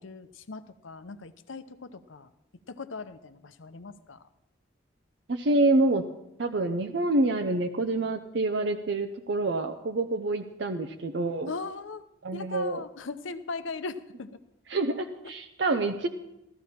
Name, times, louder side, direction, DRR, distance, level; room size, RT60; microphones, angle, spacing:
voice 1, 0.0-2.3 2.7-4.3 11.5-12.1 12.3-14.4, left 4 dB, 90° left, 12 dB, 0.7 m, -39 dB
voice 2, 5.3-6.0 6.4-11.5 12.2-12.8 14.7-16.1, right 2 dB, 65° right, 6 dB, 0.6 m, -27 dB
15.0 x 13.5 x 4.3 m, 0.89 s
head